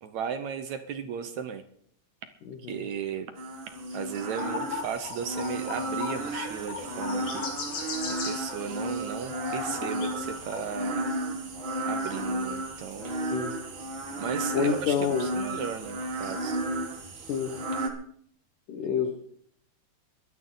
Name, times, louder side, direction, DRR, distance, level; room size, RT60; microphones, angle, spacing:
voice 1, 0.0-1.6 2.7-3.3 3.9-7.5 8.0-11.0 11.8-13.3 14.2-16.6, right 7 dB, 70° right, 8 dB, 1.9 m, -35 dB
voice 2, 2.5-2.8 13.3-13.5 14.5-15.3 17.1-17.5 18.7-19.1, left 7 dB, 65° left, 5 dB, 2.7 m, -28 dB
sound 1, 3.4-17.9, right 1 dB, 45° right, 1.8 m, -33 dB
sound 2, 4.4-10.8, left 6 dB, 85° left, 4.5 m, -38 dB
22.0 x 11.0 x 4.0 m, 0.63 s
omnidirectional pair, 4.2 m